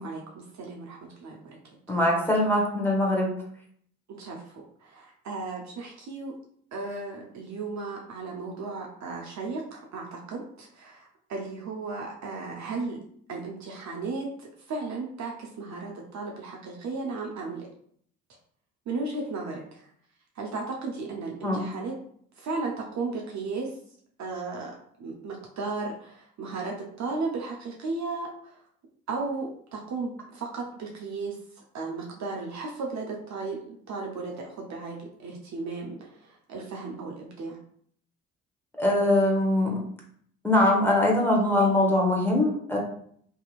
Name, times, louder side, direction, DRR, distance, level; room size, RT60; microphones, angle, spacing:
voice 1, 0.0-1.6 1.9-2.0 4.1-6.4 6.7-13.0 13.3-17.7 18.9-19.9 20.4-22.0 22.4-23.8 24.2-28.7 29.1-37.6, right 3 dB, 40° right, 0 dB, 0.6 m, -35 dB
voice 2, 1.9-3.3 21.4-21.6 38.8-39.8 40.4-42.8, left 1 dB, 5° left, -2 dB, 0.9 m, -22 dB
2.8 x 2.6 x 2.4 m, 0.63 s
hypercardioid pair, 50°, 42 cm